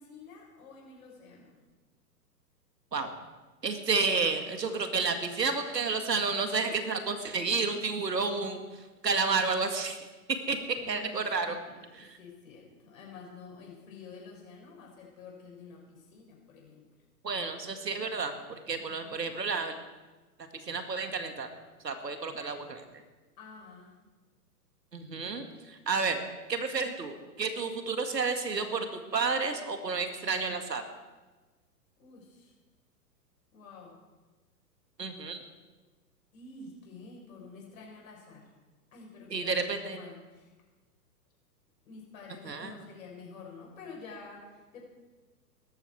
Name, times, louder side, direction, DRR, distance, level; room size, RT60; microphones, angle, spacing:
voice 1, 0.0-1.6 10.6-16.9 18.8-19.3 23.4-23.9 32.0-32.5 33.5-33.9 36.3-38.4 38.9-40.5 41.8-44.8, left 4 dB, 55° left, -1 dB, 6.2 m, -49 dB
voice 2, 3.6-8.6 9.0-10.0 10.5-10.6 10.9-11.6 12.0-12.2 17.2-18.3 18.7-19.8 20.6-21.5 21.8-22.8 24.9-26.2 26.5-30.8 35.0-35.4 39.3-40.0 42.5-42.7, right 4 dB, 75° right, 7 dB, 2.0 m, -31 dB
18.5 x 13.5 x 4.7 m, 1.2 s
figure-of-eight pair, 115°, 49 cm